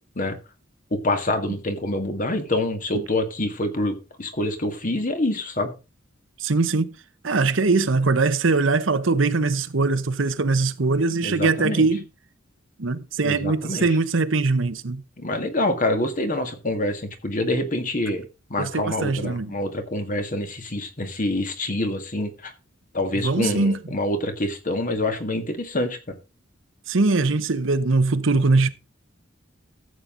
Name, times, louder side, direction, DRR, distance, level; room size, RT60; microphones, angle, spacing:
voice 1, 0.9-5.7 11.2-11.9 13.2-13.9 15.2-22.5 22.9-26.1, left 1 dB, 45° left, 2.0 m, -26 dB
voice 2, 6.4-6.9 7.2-12.0 12.8-15.0 18.6-19.5 23.1-23.8 26.9-28.7, right 3 dB, 75° right, 0.9 m, -21 dB
14.0 x 7.8 x 3.9 m
head